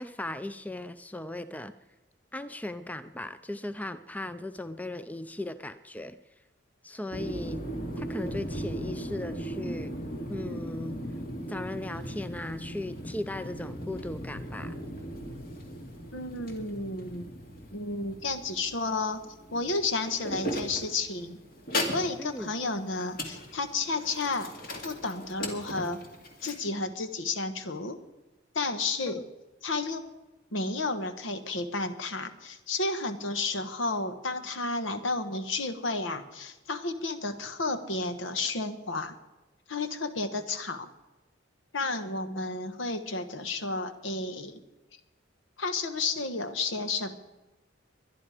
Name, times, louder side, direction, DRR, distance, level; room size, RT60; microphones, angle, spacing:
voice 1, 0.0-1.7 2.3-6.2 6.8-7.6 8.0-10.0 10.3-11.0 11.5-14.7 22.2-22.5 29.1-29.2, left 2 dB, 10° left, 12 dB, 0.4 m, -37 dB
sound 1, 7.1-26.5, equal, 50° left, 2.3 m, -38 dB
voice 2, 16.1-17.3 17.7-19.2 19.5-21.4 21.9-24.5 24.8-26.0 26.4-28.0 28.5-29.3 29.6-30.1 30.5-39.2 39.7-40.9 41.7-44.6 45.6-47.2, left 3 dB, 80° left, 9 dB, 1.3 m, -32 dB
22.5 x 11.0 x 5.0 m, 1.1 s
head